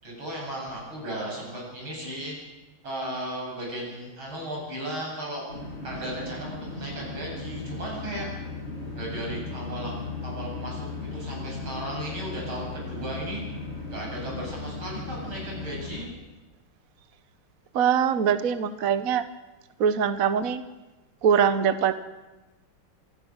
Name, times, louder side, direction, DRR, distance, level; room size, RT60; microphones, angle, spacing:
voice 1, 0.0-2.4 2.8-5.5 5.8-8.3 8.8-9.9 10.2-13.4 13.9-16.1, right 1 dB, 85° right, -2 dB, 8.9 m, -35 dB
sound 1, 5.5-16.1, left 3 dB, 30° left, 3.1 m, -36 dB
voice 2, 17.7-19.2 19.8-20.6 21.2-21.9, right 7 dB, 50° right, 11 dB, 1.2 m, -22 dB
26.5 x 17.0 x 6.5 m, 1.1 s
omnidirectional pair, 2.2 m